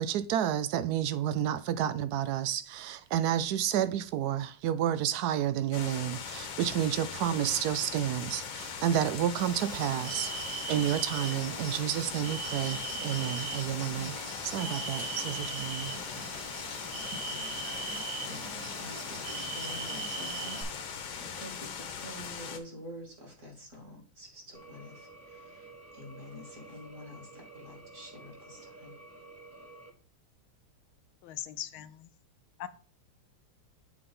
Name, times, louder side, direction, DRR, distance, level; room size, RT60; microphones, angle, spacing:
voice 1, 0.0-15.9, right 10 dB, 75° right, 0.8 m, -30 dB
sound 1, 5.7-22.6, left 7 dB, 65° left, 1.6 m, -40 dB
sound 2, 9.4-20.6, right 3 dB, 55° right, 2.2 m, -39 dB
voice 2, 18.1-29.0, left 1 dB, 35° right, 2.8 m, -48 dB
sound 3, 24.5-29.9, right 2 dB, 10° right, 0.7 m, -51 dB
voice 3, 31.2-32.1 32.6-32.7, left 12 dB, 85° left, 1.6 m, -40 dB
7.8 x 4.0 x 5.4 m
omnidirectional pair, 2.2 m